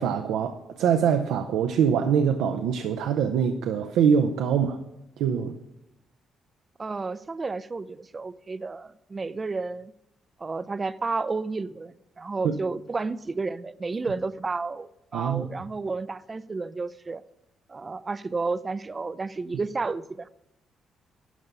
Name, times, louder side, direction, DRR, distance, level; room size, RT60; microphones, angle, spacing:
voice 1, 0.0-4.8 5.2-5.6 12.4-12.5 15.1-15.5, right 7 dB, 90° right, 6 dB, 0.7 m, -24 dB
voice 2, 6.8-9.9 10.4-17.2 17.7-20.3, right 3 dB, 30° right, 15 dB, 0.5 m, -31 dB
12.0 x 5.4 x 8.2 m, 0.86 s
cardioid pair, 90°, 0 cm